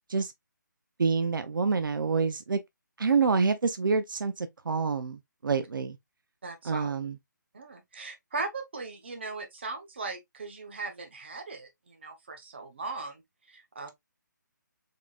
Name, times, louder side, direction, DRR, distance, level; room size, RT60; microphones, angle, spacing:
voice 1, 1.0-2.6 3.0-6.0 6.6-7.2, right 5 dB, 85° right, 0.6 m, -27 dB
voice 2, 6.4-6.9 7.5-13.2 13.5-13.9, right 3 dB, 35° right, 0.9 m, -38 dB
3.7 x 3.7 x 2.3 m
hypercardioid pair, 180°, 11 cm